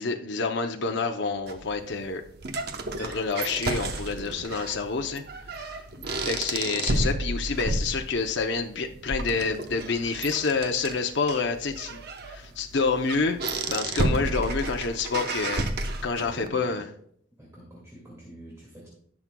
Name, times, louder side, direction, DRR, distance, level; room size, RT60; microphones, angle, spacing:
voice 1, 0.0-2.2 3.0-5.2 5.5-5.8 6.2-13.4 13.7-15.7 16.0-16.9, left 4 dB, 60° left, 4 dB, 0.6 m, -28 dB
sound 1, 1.5-16.5, right 2 dB, 50° right, 0.8 m, -32 dB
voice 2, 4.1-4.6 6.0-6.3 16.1-16.8 17.4-18.9, right 1 dB, 15° right, -4 dB, 2.1 m, -45 dB
18.0 x 6.0 x 2.2 m, 0.66 s
head